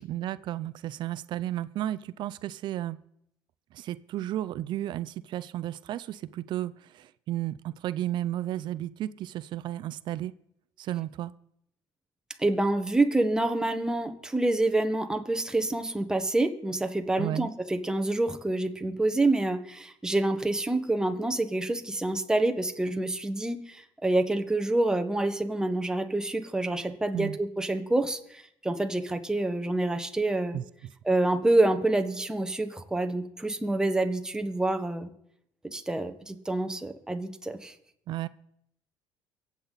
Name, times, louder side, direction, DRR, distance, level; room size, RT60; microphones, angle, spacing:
voice 1, 0.0-3.0 3.7-10.3 10.8-11.3 17.2-17.5 27.1-27.4 30.5-30.6 38.1-38.3, right 13 dB, 60° right, 17 dB, 0.5 m, -33 dB
voice 2, 12.4-30.6 31.0-35.1 35.6-37.7, right 2 dB, 5° right, 7 dB, 1.3 m, -27 dB
24.0 x 8.3 x 4.1 m, 0.74 s
cardioid pair, 110°, 9 cm